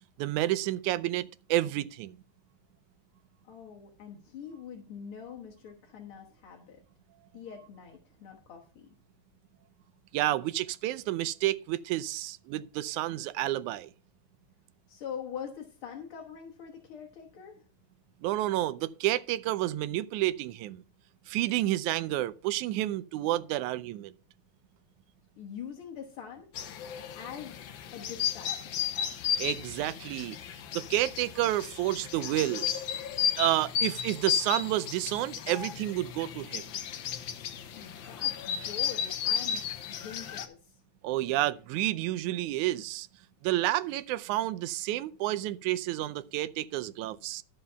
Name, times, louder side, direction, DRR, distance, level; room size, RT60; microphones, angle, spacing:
voice 1, 0.2-2.2 10.1-13.9 18.2-20.8 21.3-24.1 29.4-30.4 30.7-32.7 33.4-36.6 41.0-43.1 43.4-47.4, right 15 dB, 85° right, 2.0 m, -30 dB
voice 2, 3.4-6.8 7.3-8.9 14.9-17.6 25.4-26.5 27.2-27.6 27.9-28.8 37.7-40.8, left 7 dB, 55° left, 1.8 m, -44 dB
sound 1, 26.5-40.5, left 8 dB, 75° left, 1.1 m, -34 dB
12.5 x 5.6 x 5.6 m
omnidirectional pair, 3.4 m